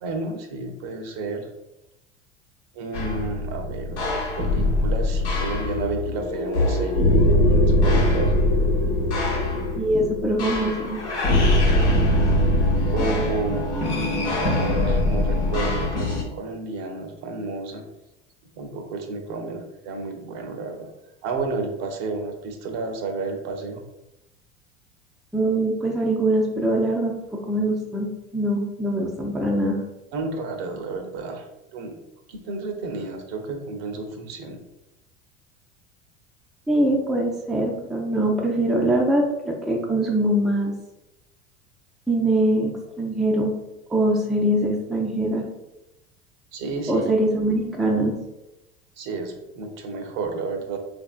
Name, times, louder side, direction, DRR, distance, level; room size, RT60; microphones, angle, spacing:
voice 1, 0.0-1.5 2.7-8.9 12.9-14.6 14.8-17.8 18.5-20.9 21.2-23.8 30.1-31.5 31.7-31.9 32.3-34.6 46.5-47.1 49.0-50.8, right 3 dB, 50° right, 5 dB, 0.7 m, -31 dB
sound 1, 2.9-16.2, left 1 dB, 85° left, 1.0 m, -22 dB
voice 2, 9.8-11.0 25.3-27.1 27.5-29.8 36.7-40.7 42.1-43.6 43.9-45.5 46.9-48.1, right 1 dB, ahead, -1 dB, 0.4 m, -23 dB
3.5 x 2.5 x 2.3 m, 0.92 s
hypercardioid pair, 80°, 34 cm